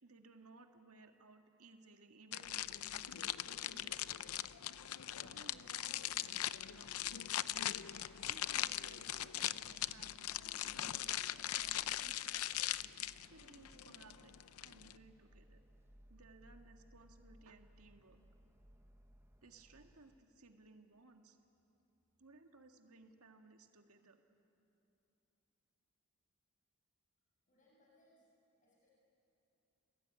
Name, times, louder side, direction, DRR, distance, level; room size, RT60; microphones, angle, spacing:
voice 1, 0.0-4.3 5.2-7.2 8.3-11.1 11.6-12.4 13.3-14.3 14.6-15.6 16.1-18.2 19.4-21.4 22.2-24.2, right 3 dB, 75° right, 4 dB, 1.8 m, -61 dB
sound 1, 2.3-15.0, left 12 dB, 75° left, 0.6 m, -40 dB
sound 2, 2.4-20.2, equal, 10° right, 1.1 m, -65 dB
voice 2, 27.5-28.3 28.6-28.9, left 1 dB, 35° left, -4 dB, 6.9 m, -71 dB
30.0 x 21.0 x 9.5 m, 2.9 s
head